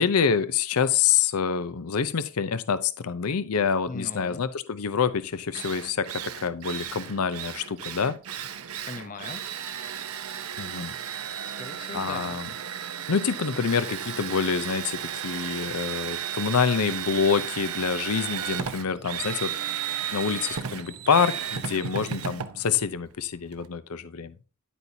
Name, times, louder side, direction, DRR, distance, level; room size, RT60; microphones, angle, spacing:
voice 1, 0.0-8.2 10.6-10.9 11.9-12.5 13.1-19.6 20.1-24.3, left 6 dB, 80° left, 0.6 m, -26 dB
voice 2, 3.9-4.4 8.8-9.4 11.2-12.4, left 3 dB, 35° left, 0.7 m, -39 dB
Drill, 5.1-5.2 5.5-23.7, right 8 dB, 75° right, 0.8 m, -34 dB
9.9 x 8.3 x 2.7 m
head